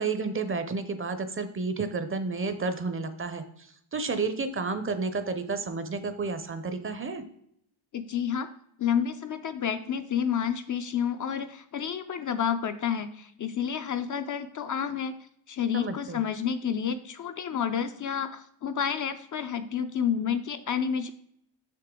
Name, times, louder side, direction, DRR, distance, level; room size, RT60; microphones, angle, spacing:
voice 1, 0.0-3.4 3.9-7.2 15.7-16.2, right 4 dB, 25° right, 10 dB, 0.6 m, -31 dB
voice 2, 7.9-8.5 8.8-15.1 15.5-21.1, left 8 dB, 40° left, 9 dB, 0.5 m, -30 dB
6.7 x 6.5 x 3.7 m, 0.70 s
cardioid pair, 140°, 48 cm